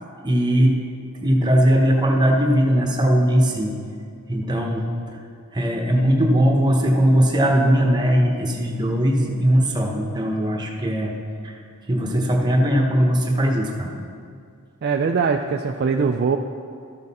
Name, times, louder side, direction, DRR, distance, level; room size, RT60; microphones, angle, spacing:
voice 1, 0.2-0.8 1.2-3.7 4.3-5.2 5.5-11.1 11.4-11.5 11.9-13.9, equal, 20° right, 1 dB, 1.0 m, -19 dB
voice 2, 14.8-16.4, right 5 dB, 45° right, 4 dB, 0.3 m, -21 dB
12.5 x 6.5 x 4.1 m, 2.3 s
head